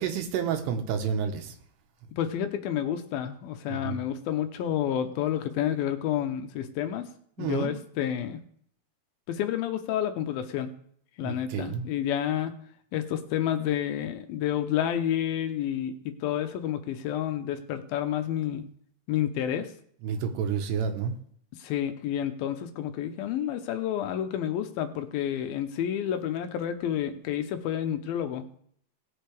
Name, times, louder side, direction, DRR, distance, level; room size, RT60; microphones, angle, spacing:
voice 1, 0.0-1.5 3.7-4.0 7.4-7.7 11.2-11.9 20.0-21.1, right 7 dB, 80° right, 5 dB, 3.2 m, -30 dB
voice 2, 2.2-7.1 7.4-8.4 9.3-10.7 11.2-12.5 12.9-18.6 19.1-19.7 21.6-28.5, left 10 dB, 75° left, 8 dB, 2.5 m, -30 dB
18.5 x 8.0 x 3.4 m, 0.63 s
omnidirectional pair, 4.8 m